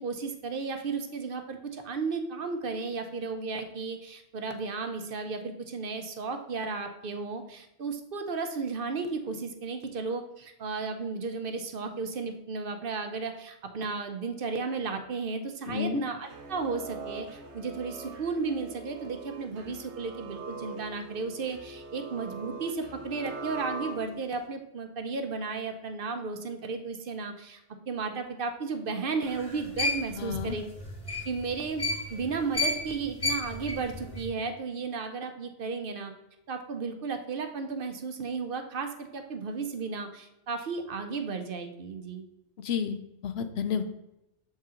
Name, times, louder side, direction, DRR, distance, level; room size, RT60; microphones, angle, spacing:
voice 1, 0.0-27.6 27.9-30.6 31.2-31.8 32.1-36.1 36.5-42.2, right 4 dB, 60° right, 6 dB, 0.8 m, -34 dB
voice 2, 15.7-16.0 30.2-30.6 42.6-43.8, left 7 dB, 70° left, 9 dB, 0.8 m, -31 dB
sound 1, 16.2-24.4, right 3 dB, 90° right, 1.1 m, -42 dB
sound 2, 29.3-32.2 32.5-34.2, left 2 dB, 30° left, 1.8 m, -31 dB
7.1 x 4.2 x 3.7 m, 0.87 s
omnidirectional pair, 1.1 m